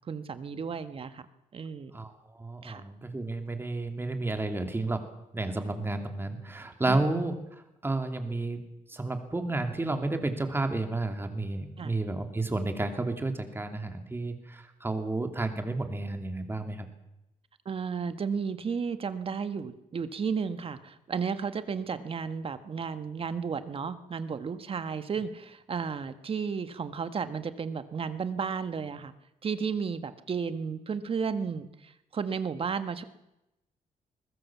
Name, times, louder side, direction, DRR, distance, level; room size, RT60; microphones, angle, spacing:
voice 1, 0.1-1.2 1.5-1.9 2.6-2.8 6.9-7.0 11.8-11.9 17.6-29.1 29.4-33.0, right 6 dB, 40° right, 11 dB, 1.5 m, -33 dB
voice 2, 1.9-5.1 5.3-8.6 8.9-16.9, right 2 dB, 15° right, 6 dB, 2.8 m, -31 dB
22.0 x 20.5 x 7.3 m, 0.91 s
cardioid pair, 130°, 14 cm